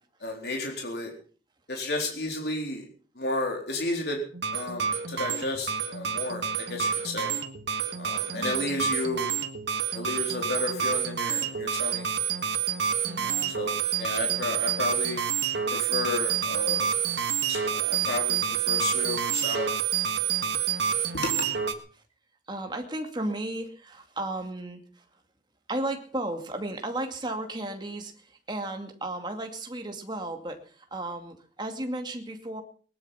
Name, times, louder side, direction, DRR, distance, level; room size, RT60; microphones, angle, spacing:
voice 1, 0.2-1.1 1.7-2.9 3.2-4.2 4.5-7.3 8.0-9.3 9.9-12.1 13.5-15.2 15.7-16.9 17.5-18.4 18.7-19.8 21.1-21.3, left 2 dB, 60° left, 1 dB, 4.0 m, -32 dB
sound 1, 4.3-21.7, right 8 dB, 75° right, 1.8 m, -28 dB
voice 2, 8.3-8.7 13.0-13.5 21.9-22.0 22.5-25.0 25.7-32.6, right 1 dB, 25° right, 4 dB, 2.4 m, -34 dB
19.5 x 12.0 x 5.8 m, 0.43 s
head